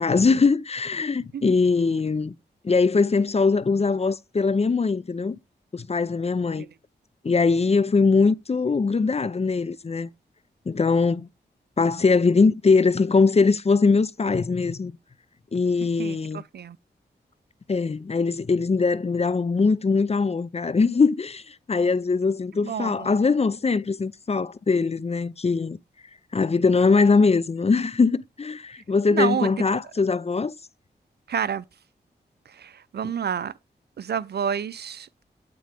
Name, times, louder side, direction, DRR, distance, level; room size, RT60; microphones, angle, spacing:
voice 1, 0.0-2.3 2.6-5.4 5.7-6.7 7.2-10.1 10.7-11.3 11.8-14.9 15.5-16.4 17.7-25.8 26.3-30.5, left 4 dB, 35° left, 0.5 m, -21 dB
voice 2, 16.0-16.8 22.6-23.1 28.8-28.9 29.1-29.6 31.3-31.6 32.5-33.6 34.0-35.1, right 8 dB, 65° right, 0.5 m, -29 dB
8.7 x 3.8 x 3.4 m
cardioid pair, 40°, 18 cm